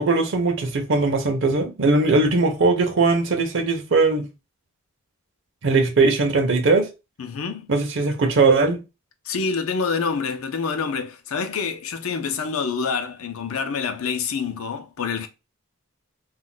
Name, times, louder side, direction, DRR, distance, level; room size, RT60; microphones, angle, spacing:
voice 1, 0.0-4.3 5.6-6.9 7.7-8.8, right 3 dB, 60° right, 0.6 m, -19 dB
voice 2, 7.2-7.7 9.2-15.3, left 5 dB, 80° left, 0.5 m, -27 dB
2.4 x 2.1 x 3.8 m
head